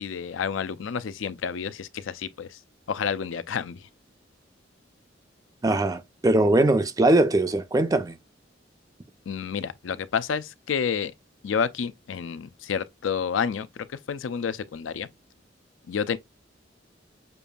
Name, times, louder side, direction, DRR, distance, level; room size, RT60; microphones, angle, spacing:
voice 1, 0.0-2.6 2.9-3.9 9.3-11.1 11.4-15.1 15.9-16.2, left 6 dB, 80° left, 0.4 m, -29 dB
voice 2, 5.6-8.2, right 2 dB, 20° right, 0.4 m, -21 dB
6.7 x 2.5 x 2.3 m
head